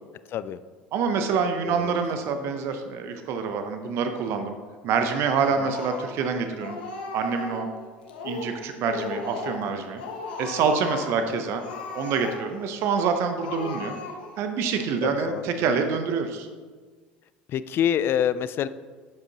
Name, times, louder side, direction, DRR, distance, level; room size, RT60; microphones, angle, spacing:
voice 1, 0.3-0.6 1.6-2.0 5.6-5.7 15.0-15.7 17.5-18.7, left 9 dB, 50° left, 15 dB, 0.4 m, -27 dB
voice 2, 0.9-4.6 4.8-6.8 7.1-7.7 8.2-10.0 10.4-11.6 11.9-14.0 14.4-16.5, right 5 dB, 60° right, 7 dB, 0.7 m, -26 dB
Speech, 5.3-6.3 6.6-7.7 8.1-8.6 8.8-9.7 10.0-11.2 11.5-12.6 13.0-13.1 13.4-14.4, left 4 dB, 85° left, 1.1 m, -36 dB
12.0 x 5.2 x 2.9 m, 1.5 s
hypercardioid pair, 75°, 5 cm